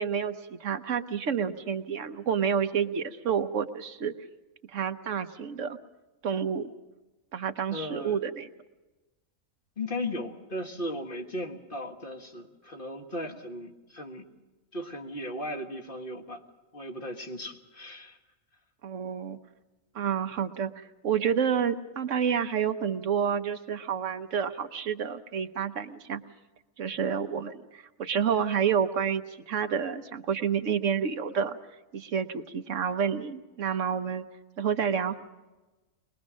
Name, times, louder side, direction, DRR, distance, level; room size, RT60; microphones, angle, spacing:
voice 1, 0.0-4.1 4.7-5.8 6.2-6.7 7.3-8.5 18.8-19.4 19.9-26.2 26.8-31.6 31.9-34.2 34.6-35.2, right 7 dB, 70° right, 9 dB, 1.2 m, -29 dB
voice 2, 7.7-8.3 9.8-14.3 14.7-16.4 16.7-18.2, left 1 dB, 40° left, 3 dB, 1.7 m, -36 dB
23.0 x 20.5 x 6.3 m, 1.1 s
omnidirectional pair, 1.4 m